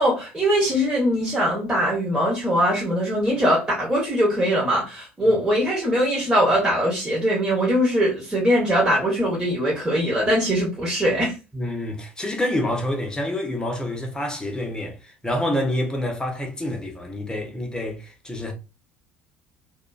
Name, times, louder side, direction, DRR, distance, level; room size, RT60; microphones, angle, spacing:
voice 1, 0.0-11.3, equal, 10° right, 1.0 m, -21 dB
voice 2, 11.5-18.5, left 1 dB, 10° left, 0.7 m, -27 dB
2.5 x 2.2 x 2.3 m
figure-of-eight pair, 60°, 7 cm